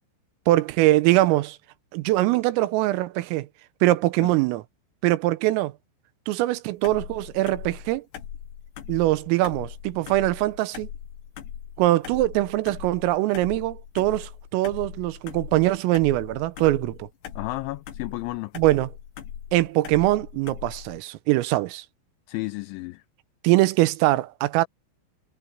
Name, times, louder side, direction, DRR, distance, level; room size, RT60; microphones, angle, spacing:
voice 1, 0.5-1.6 1.9-3.5 3.8-4.6 5.0-5.7 6.3-8.0 8.9-10.9 11.8-17.1 18.6-18.9 19.5-21.9 23.4-24.7, right 17 dB, 85° right, 3.5 m, -22 dB
sound 1, 6.8-21.0, left 9 dB, 65° left, 3.8 m, -40 dB
voice 2, 17.4-18.5 22.3-23.0, left 20 dB, 85° left, 2.7 m, -32 dB
omnidirectional pair, 6.0 m